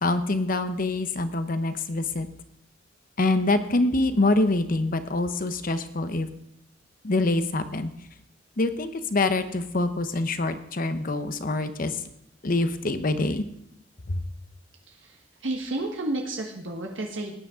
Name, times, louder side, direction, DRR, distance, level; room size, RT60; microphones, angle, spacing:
voice 1, 0.0-2.3 3.2-6.3 7.0-7.9 8.6-12.0 12.4-13.4 14.1-14.2, left 2 dB, 50° left, 10 dB, 0.9 m, -25 dB
voice 2, 14.9-17.3, right 2 dB, 85° right, 1 dB, 1.4 m, -32 dB
17.5 x 9.9 x 3.7 m, 0.77 s
head